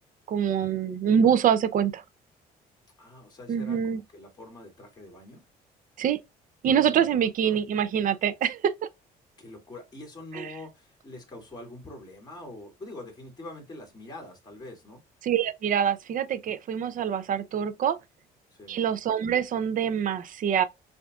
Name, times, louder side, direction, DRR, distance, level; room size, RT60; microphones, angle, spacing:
voice 1, 0.3-2.0 3.5-4.0 6.0-6.2 6.6-8.7 10.4-10.5 15.2-18.0 18.7-20.6, right 8 dB, 50° right, 0.6 m, -25 dB
voice 2, 3.0-5.4 6.6-7.1 7.4-7.6 9.4-15.0 18.5-18.9, left 2 dB, 25° left, 2.6 m, -44 dB
6.8 x 2.6 x 2.4 m
cardioid pair, 110°, 17 cm